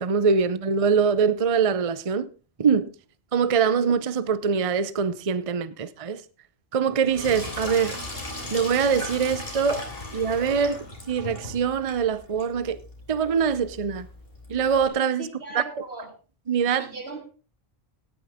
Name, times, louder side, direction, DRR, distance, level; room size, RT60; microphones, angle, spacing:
voice 1, 0.0-2.3 2.6-2.9 3.3-6.2 6.7-8.0 8.5-9.8 10.1-12.8 13.1-14.1 14.5-15.3 15.5-15.6 16.5-16.9, right 6 dB, 40° right, 0.7 m, -23 dB
Sink (filling or washing), 7.0-14.9, left 1 dB, 65° left, 3.7 m, -38 dB
voice 2, 15.2-16.1 16.8-17.2, right 3 dB, 80° right, 3.2 m, -38 dB
17.5 x 9.3 x 3.5 m
omnidirectional pair, 1.1 m